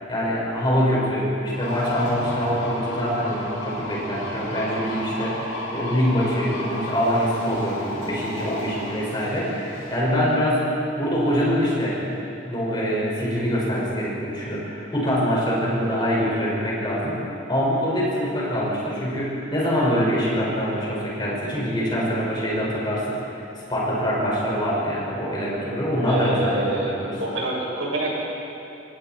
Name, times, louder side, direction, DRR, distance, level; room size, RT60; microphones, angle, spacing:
voice 1, 0.1-10.6 11.0-12.0 12.4-17.2 17.5-23.4 23.7-27.2, equal, 25° left, -5 dB, 6.1 m, -24 dB
sound 1, 1.5-10.0, left 1 dB, 70° left, 6.5 m, -33 dB
voice 2, 26.0-28.2, right 2 dB, 70° right, -4 dB, 7.5 m, -27 dB
28.0 x 23.0 x 4.6 m, 2.7 s
head